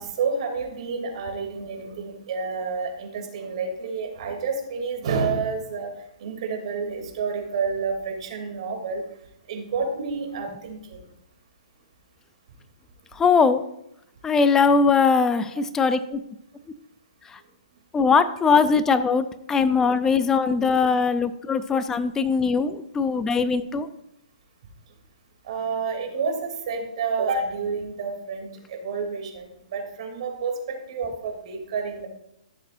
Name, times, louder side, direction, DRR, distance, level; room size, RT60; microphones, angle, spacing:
voice 1, 0.0-5.9 6.2-9.0 9.5-11.0 21.0-21.1 25.4-32.1, right 5 dB, 55° right, 2 dB, 2.8 m, -29 dB
voice 2, 13.2-13.6 14.2-16.2 17.9-23.9, left 5 dB, 10° left, 12 dB, 0.5 m, -21 dB
14.5 x 6.6 x 2.6 m, 0.79 s
hypercardioid pair, 140°, 4 cm